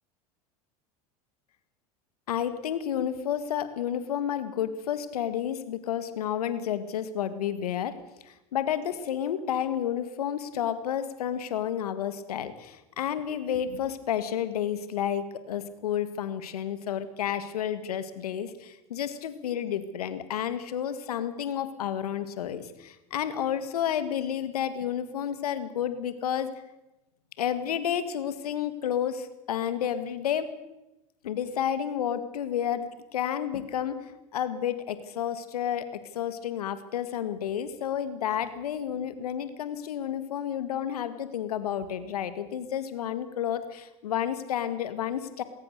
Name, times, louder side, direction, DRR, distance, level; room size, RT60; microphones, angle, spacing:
voice 1, 2.3-7.9 8.2-26.5 27.4-30.5 31.2-35.9 36.1-45.4, left 9 dB, 80° left, 12 dB, 1.9 m, -31 dB
21.0 x 18.0 x 6.7 m, 0.97 s
hypercardioid pair, 85°, 19 cm